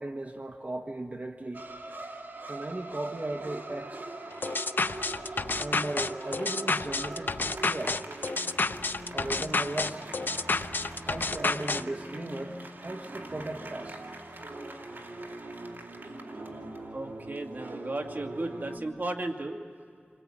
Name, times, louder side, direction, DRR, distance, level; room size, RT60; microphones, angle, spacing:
voice 1, 0.0-1.7 2.5-4.1 5.6-8.0 9.1-10.1 11.1-14.0, right 2 dB, 45° right, 4 dB, 1.4 m, -36 dB
sound 1, 1.5-18.8, right 2 dB, 75° right, 2.5 m, -42 dB
sound 2, 4.4-11.8, left 3 dB, 70° left, 0.6 m, -30 dB
voice 2, 16.9-19.6, right 2 dB, 60° right, 3 dB, 2.3 m, -35 dB
28.5 x 21.0 x 8.7 m, 2.2 s
wide cardioid pair, 65°, 4 cm